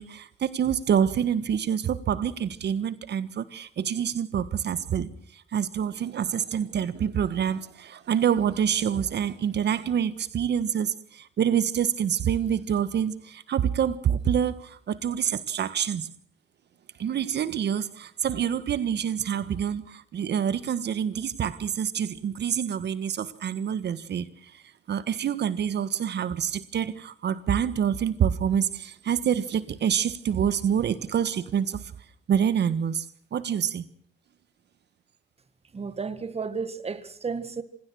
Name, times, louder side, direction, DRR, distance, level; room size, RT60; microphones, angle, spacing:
voice 1, 0.0-16.1 17.0-24.3 24.5-24.6 24.9-31.8 32.3-33.1 33.3-33.8, right 8 dB, 60° right, 1.5 m, -27 dB
voice 2, 35.7-37.6, right 5 dB, 30° right, 1.9 m, -33 dB
26.0 x 18.0 x 6.4 m
cardioid pair, 90°, 20 cm